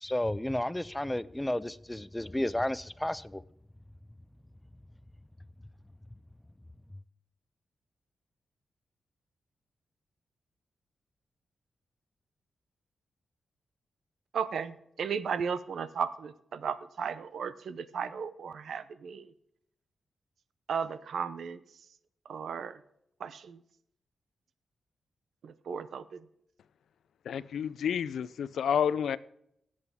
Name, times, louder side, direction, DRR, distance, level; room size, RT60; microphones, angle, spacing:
voice 1, 0.0-3.4, left 1 dB, 10° left, 0.4 m, -32 dB
voice 2, 14.3-19.3 20.7-21.6 22.3-22.8 23.2-23.6 25.4-26.2, right 6 dB, 70° right, 0.7 m, -35 dB
voice 3, 27.3-29.2, left 8 dB, 85° left, 0.4 m, -30 dB
17.0 x 7.7 x 3.6 m
wide cardioid pair, 125°, 0 cm